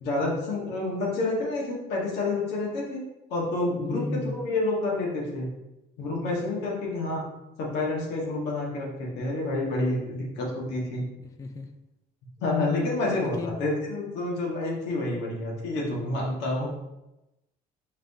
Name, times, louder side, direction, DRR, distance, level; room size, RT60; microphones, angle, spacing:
voice 1, 0.0-3.0 3.3-5.5 6.0-7.2 7.6-11.0 12.4-16.7, left 2 dB, 90° left, -3 dB, 1.3 m, -28 dB
voice 2, 3.9-4.4 11.2-11.7 13.1-13.6 16.6-16.7, left 3 dB, 20° left, 6 dB, 0.3 m, -34 dB
4.9 x 3.6 x 2.7 m, 0.95 s
cardioid pair, 110°, 17 cm